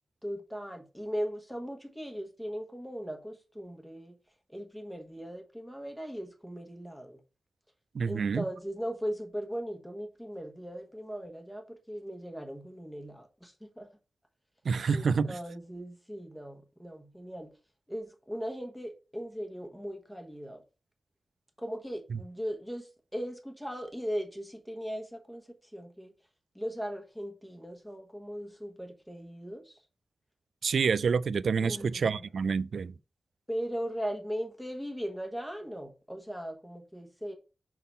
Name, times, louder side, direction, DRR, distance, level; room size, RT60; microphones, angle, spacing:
voice 1, 0.2-4.2 4.5-7.2 8.0-13.9 14.9-17.5 17.9-20.6 21.6-26.1 26.5-29.8 31.6-32.3 33.5-37.4, equal, ahead, 1.1 m, -38 dB
voice 2, 7.9-8.4 14.6-15.4 22.1-22.2 30.6-32.9, right 5 dB, 70° right, 0.3 m, -28 dB
5.8 x 3.7 x 5.5 m
wide cardioid pair, 165°, 0 cm